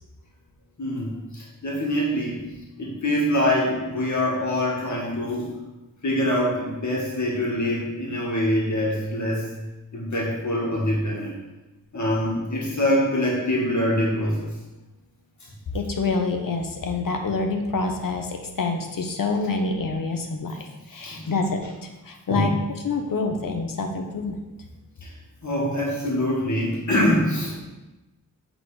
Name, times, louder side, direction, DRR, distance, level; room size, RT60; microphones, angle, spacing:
voice 1, 0.8-2.5 2.8-5.5 6.0-9.5 9.9-11.4 11.9-14.5 21.0-21.2 22.3-22.4 25.0-25.1 25.4-27.5, left 1 dB, 60° left, -4 dB, 1.9 m, -24 dB
voice 2, 15.7-22.5 22.8-24.4, left 3 dB, 75° left, 4 dB, 1.0 m, -27 dB
8.0 x 3.9 x 4.9 m, 1.0 s
wide cardioid pair, 110°, 34 cm